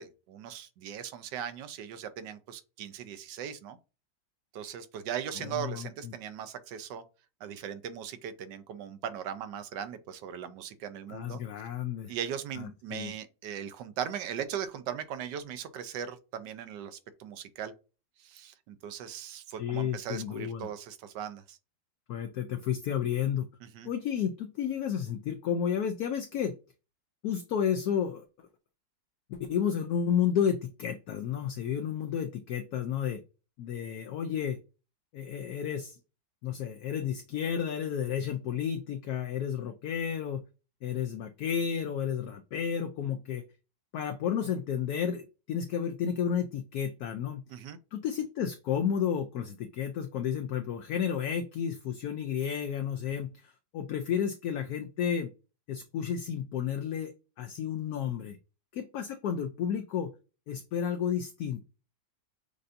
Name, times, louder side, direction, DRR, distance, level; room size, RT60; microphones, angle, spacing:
voice 1, 0.0-3.8 4.5-7.0 7.4-11.4 12.1-17.7 18.2-21.6 23.6-23.9 47.5-47.8, right 9 dB, 75° right, 1.2 m, -39 dB
voice 2, 5.4-6.1 11.1-12.1 12.6-13.1 19.6-20.7 22.1-23.5 23.8-26.5 27.2-28.5 29.3-33.2 33.6-34.6 35.1-36.0 36.4-40.4 40.8-43.4 43.9-47.4 47.9-55.3 55.7-57.1 57.4-58.4 58.7-60.1 60.5-61.6, left 8 dB, 70° left, 0.9 m, -32 dB
6.6 x 2.6 x 2.5 m
omnidirectional pair, 2.0 m